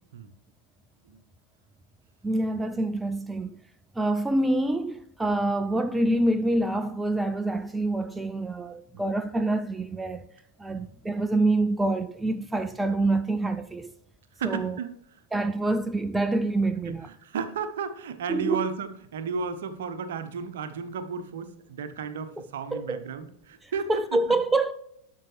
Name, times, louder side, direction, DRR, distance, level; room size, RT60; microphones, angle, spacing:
voice 1, 2.2-3.6 4.0-10.3 10.6-13.9 14.4-14.8 15.3-17.1 18.3-18.7 22.4-23.0 23.6-24.7, right 2 dB, 10° right, 0.4 m, -26 dB
voice 2, 14.4-14.9 16.9-23.9, right 5 dB, 60° right, 0.8 m, -34 dB
12.0 x 5.4 x 3.2 m
figure-of-eight pair, 90°, 0 cm